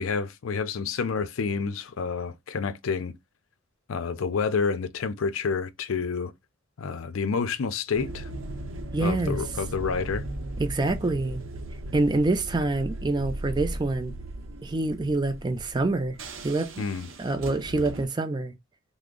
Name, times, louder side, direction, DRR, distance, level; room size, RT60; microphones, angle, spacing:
voice 1, 0.0-3.1 3.9-6.3 6.8-8.3 9.0-10.2 16.8-17.1, left 5 dB, 80° left, 0.5 m, -29 dB
sound 1, 7.9-18.1, right 1 dB, 70° right, 0.7 m, -37 dB
voice 2, 8.9-9.4 10.6-11.4 11.9-14.1 14.6-16.8 17.2-18.5, right 2 dB, 20° right, 0.4 m, -26 dB
3.4 x 2.1 x 3.7 m
head